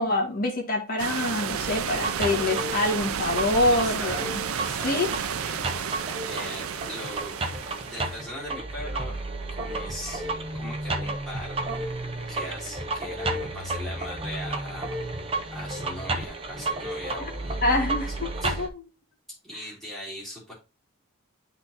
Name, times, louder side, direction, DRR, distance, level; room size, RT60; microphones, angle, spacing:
voice 1, 0.0-4.4 4.8-5.1 17.6-18.8, left 2 dB, 40° left, 1 dB, 1.8 m, -26 dB
sound 1, 1.0-8.2, right 8 dB, 85° right, 0.5 m, -32 dB
sound 2, 1.5-18.7, right 2 dB, 25° right, 0.6 m, -32 dB
voice 2, 3.7-5.0 5.4-6.0 6.3-7.4 7.8-9.2 9.5-11.6 12.3-15.0 15.5-17.8 18.4-18.6 19.4-20.5, left 1 dB, ahead, -7 dB, 3.3 m, -40 dB
10.5 x 4.0 x 2.9 m, 0.29 s
head